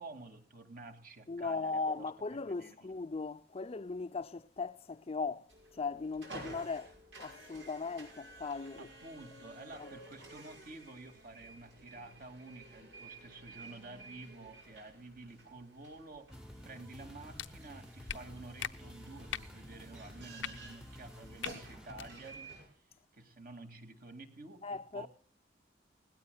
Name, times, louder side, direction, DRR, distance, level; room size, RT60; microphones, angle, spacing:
voice 1, 0.0-2.1 2.5-2.8 6.4-6.6 8.8-16.3 16.6-22.8 23.1-24.6 24.9-25.1, right 2 dB, 50° right, 2.2 m, -50 dB
voice 2, 1.3-6.9 7.2-8.9 9.8-9.9 24.6-25.1, left 4 dB, 35° left, 0.5 m, -38 dB
sound 1, 5.5-22.7, right 2 dB, 90° right, 6.0 m, -53 dB
sound 2, 16.3-22.1, equal, 5° right, 0.8 m, -52 dB
sound 3, 17.4-17.5 18.1-18.2 18.6-18.7 19.3-19.5 20.4-20.5 21.4-21.5 21.9-22.1, left 9 dB, 90° left, 0.7 m, -39 dB
20.5 x 17.5 x 2.3 m
head